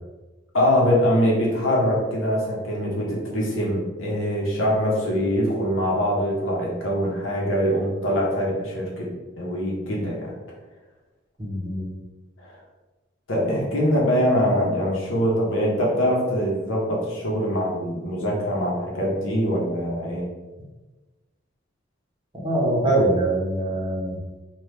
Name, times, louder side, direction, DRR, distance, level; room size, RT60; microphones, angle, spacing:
voice 1, 0.5-9.1 9.4-10.3 12.4-12.6 13.3-20.2, equal, 85° left, -3 dB, 0.9 m, -23 dB
voice 2, 11.4-11.9 22.4-24.2, right 1 dB, 25° right, -3 dB, 0.6 m, -23 dB
2.9 x 2.3 x 3.3 m, 1.2 s
head